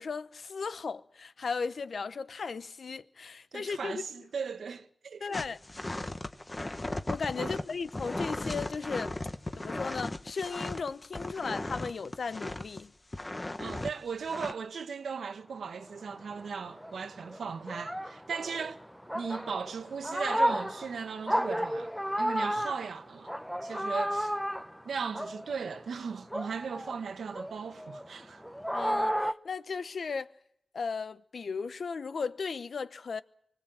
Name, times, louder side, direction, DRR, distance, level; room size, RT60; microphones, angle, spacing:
voice 1, 0.0-4.0 5.2-5.6 7.1-9.1 9.6-12.9 28.7-30.3 30.7-33.2, left 5 dB, 65° left, 0.9 m, -36 dB
voice 2, 3.5-5.3 7.4-7.6 13.6-18.8 19.1-21.9 22.2-23.3 23.6-24.3 24.8-28.4, right 6 dB, 85° right, 1.3 m, -37 dB
sound 1, 5.3-12.8 13.1-13.9 14.3-14.5, left 2 dB, 25° left, 1.4 m, -36 dB
sound 2, 15.8-26.0 26.3-29.3, equal, ahead, 0.8 m, -33 dB
25.0 x 18.0 x 7.6 m
wide cardioid pair, 90°, 0 cm